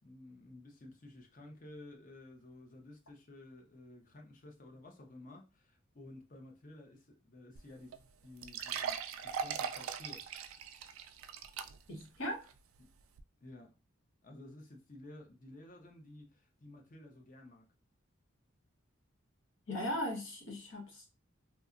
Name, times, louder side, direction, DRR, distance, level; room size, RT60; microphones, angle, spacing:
voice 1, 0.0-10.3 12.8-12.9 13.4-13.7 14.2-17.7, left 1 dB, 40° left, 0.6 m, -53 dB
sound 1, 7.6-7.7 7.9-8.0 8.4-12.0 12.5-12.6 13.2-13.3, right 7 dB, 80° right, 0.3 m, -40 dB
voice 2, 11.9-12.5 19.7-21.1, left 1 dB, 75° left, 1.0 m, -38 dB
2.8 x 2.2 x 2.5 m
head